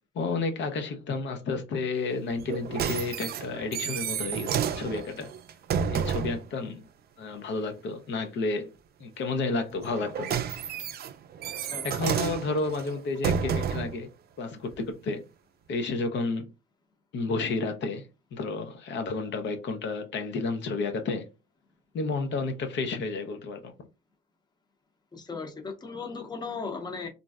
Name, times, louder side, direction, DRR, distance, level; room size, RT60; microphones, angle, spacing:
voice 1, 0.1-5.3 5.9-6.9 7.2-8.7 9.0-10.4 11.8-14.1 14.4-15.2 15.7-16.5 17.1-21.3 21.9-23.7, left 3 dB, 65° left, 0.6 m, -31 dB
sound 1, 2.4-6.4 9.8-14.0 14.7-14.8, right 8 dB, 55° right, 0.4 m, -30 dB
voice 2, 25.1-27.1, left 4 dB, 20° left, 0.7 m, -36 dB
3.0 x 2.6 x 2.3 m
cardioid pair, 90°, 20 cm